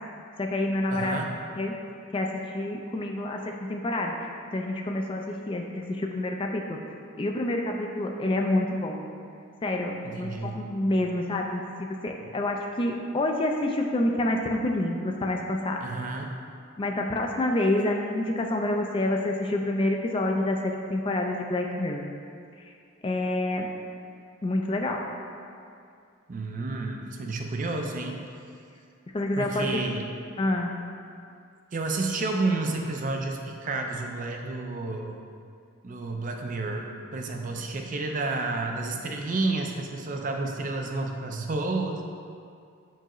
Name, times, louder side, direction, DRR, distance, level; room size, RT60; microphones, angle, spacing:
voice 1, 0.4-1.2 1.6-1.8 2.1-6.8 7.2-9.0 9.6-15.8 16.8-22.0 23.0-23.7 24.4-25.0 29.1-29.9 30.4-30.7, left 1 dB, 25° left, 2 dB, 0.3 m, -28 dB
voice 2, 0.9-1.3 10.0-10.6 15.8-16.3 26.3-28.2 29.4-30.1 31.7-35.2 35.8-42.0, right 3 dB, 40° right, 2 dB, 0.4 m, -30 dB
7.2 x 4.6 x 3.0 m, 2.4 s
head